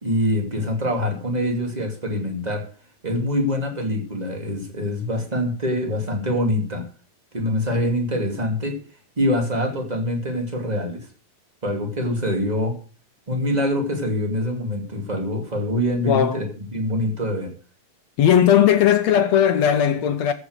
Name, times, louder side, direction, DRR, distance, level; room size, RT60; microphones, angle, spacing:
voice 1, 0.0-2.6 3.0-6.8 7.3-8.8 9.2-11.1 11.6-12.7 13.3-16.4 16.7-17.5, left 1 dB, 15° right, 2.1 m, -24 dB
voice 2, 16.1-16.4 18.2-20.3, left 9 dB, 65° left, 1.9 m, -17 dB
14.5 x 7.2 x 6.5 m
omnidirectional pair, 3.8 m